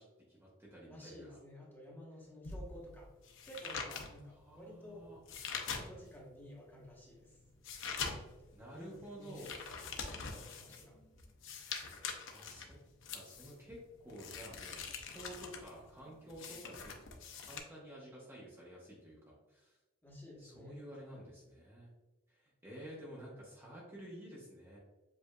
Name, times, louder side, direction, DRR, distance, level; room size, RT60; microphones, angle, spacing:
voice 1, 0.0-1.4 4.4-5.2 8.5-9.6 12.3-12.8 13.1-16.9 17.4-19.8 20.4-21.9 22.3-24.8, equal, 10° right, -6 dB, 0.9 m, -51 dB
voice 2, 0.9-3.1 3.4-5.1 5.9-7.4 7.9-11.0 20.0-21.3, equal, 10° left, -4 dB, 1.1 m, -53 dB
sound 1, 2.4-6.3 6.7-17.6, left 5 dB, 65° left, 0.6 m, -44 dB
7.5 x 2.6 x 2.2 m, 1.1 s
head